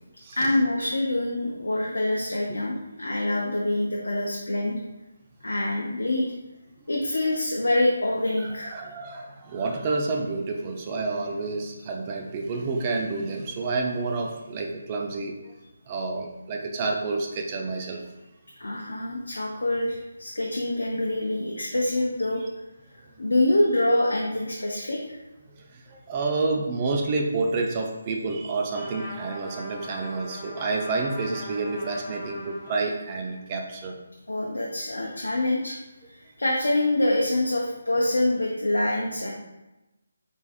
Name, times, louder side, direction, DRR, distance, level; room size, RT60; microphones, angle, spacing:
voice 1, 0.3-4.8 5.4-6.3 6.9-8.8 18.6-22.4 23.2-25.2 34.3-35.8 36.4-39.3, left 1 dB, 70° left, -2 dB, 0.5 m, -25 dB
voice 2, 8.4-15.5 15.9-18.0 25.7-33.9, right 3 dB, 25° right, 2 dB, 0.4 m, -29 dB
Trumpet, 28.7-33.3, left 1 dB, ahead, 0.8 m, -41 dB
3.4 x 3.3 x 2.4 m, 0.99 s
figure-of-eight pair, 150°, 0 cm